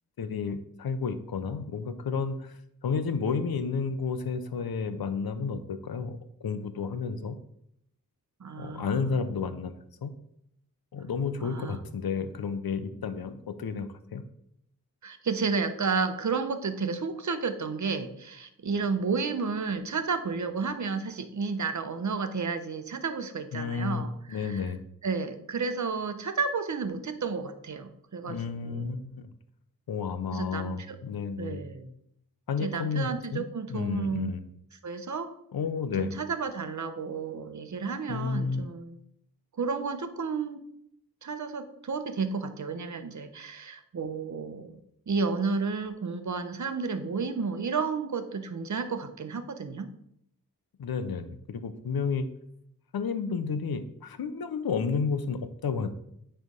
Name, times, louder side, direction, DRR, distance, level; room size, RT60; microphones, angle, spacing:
voice 1, 0.2-7.3 8.6-9.7 10.0-10.1 10.9-14.2 23.5-24.0 24.3-24.8 28.3-29.3 29.9-31.6 32.5-33.4 33.7-34.4 35.5-36.1 38.1-38.7 50.8-52.3 52.9-55.9, left 5 dB, 80° left, 11 dB, 0.8 m, -31 dB
voice 2, 8.4-9.1 11.4-11.8 15.0-24.7 25.0-29.0 30.3-31.0 31.4-31.9 32.6-34.4 34.8-35.3 36.0-39.0 39.5-40.6 41.2-44.8 45.1-49.9, right 5 dB, 50° right, 8 dB, 0.9 m, -32 dB
9.2 x 3.4 x 5.3 m, 0.73 s
wide cardioid pair, 70°, 36 cm